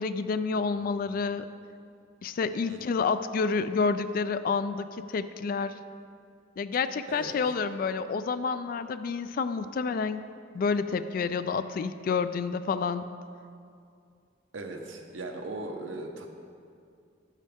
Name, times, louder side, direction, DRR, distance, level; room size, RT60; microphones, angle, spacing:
voice 1, 0.0-1.5 2.2-5.7 6.6-10.3 10.5-13.0, left 5 dB, 50° left, 12 dB, 0.3 m, -29 dB
voice 2, 14.5-16.3, right 2 dB, 80° right, 3 dB, 0.9 m, -38 dB
10.5 x 8.3 x 3.5 m, 2.4 s
head